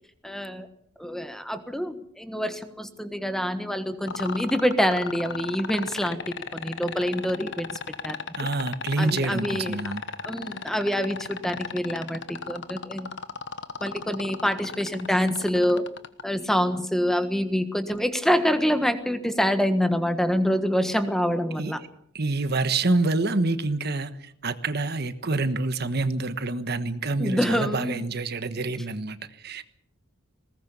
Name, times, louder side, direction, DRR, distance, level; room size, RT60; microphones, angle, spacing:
voice 1, 0.2-0.7 1.0-8.5 9.0-9.9 10.2-13.1 13.8-15.8 16.2-21.8 27.2-28.0, equal, ahead, 9 dB, 1.4 m, -26 dB
sound 1, 4.1-16.2 17.9-18.0, left 5 dB, 65° left, 1.3 m, -34 dB
voice 2, 8.3-10.0 21.6-21.9 22.1-29.6, right 2 dB, 55° right, 11 dB, 1.3 m, -27 dB
21.0 x 19.0 x 6.9 m, 0.69 s
head